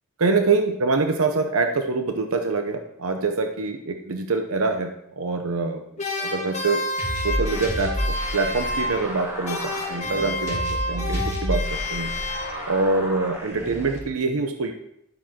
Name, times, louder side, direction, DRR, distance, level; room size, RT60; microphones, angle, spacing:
voice 1, 0.2-4.9 5.2-5.8 6.2-6.8 7.2-10.6 10.9-11.6 11.9-12.1 12.7-14.7, right 3 dB, 75° right, 6 dB, 0.8 m, -24 dB
sound 1, 6.0-9.2 9.4-12.8, left 1 dB, 35° left, 1.7 m, -30 dB
sound 2, 7.0-14.0, equal, 15° right, 2.4 m, -31 dB
11.5 x 7.5 x 4.4 m, 0.79 s
head